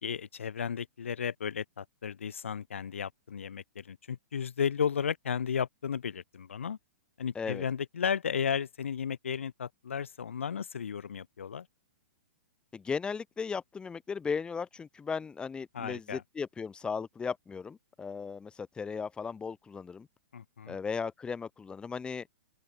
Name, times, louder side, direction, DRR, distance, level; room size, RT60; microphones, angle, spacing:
voice 1, 0.0-6.8 7.2-11.7 15.7-16.2 20.3-20.8, left 7 dB, 70° left, 2.6 m, -34 dB
voice 2, 12.7-20.1 20.7-22.3, left 5 dB, 15° left, 2.1 m, -36 dB
figure-of-eight pair, 115°, 7 cm